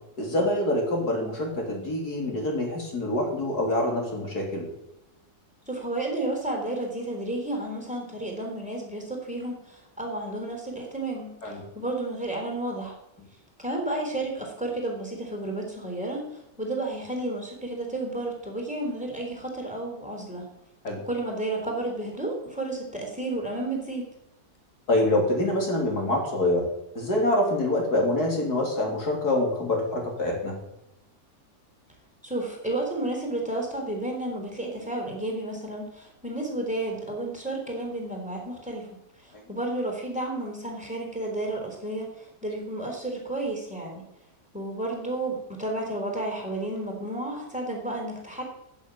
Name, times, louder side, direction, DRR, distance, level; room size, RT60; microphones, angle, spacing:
voice 1, 0.2-4.7 11.4-11.6 20.8-21.0 24.9-26.7 27.0-30.6, left 1 dB, 60° left, 0 dB, 3.8 m, -25 dB
voice 2, 5.7-13.0 13.6-16.2 16.6-20.5 21.0-24.1 32.2-38.9 39.2-44.1 44.5-48.4, right 2 dB, 5° right, 1 dB, 3.6 m, -32 dB
15.0 x 7.3 x 9.1 m, 0.88 s
omnidirectional pair, 1.8 m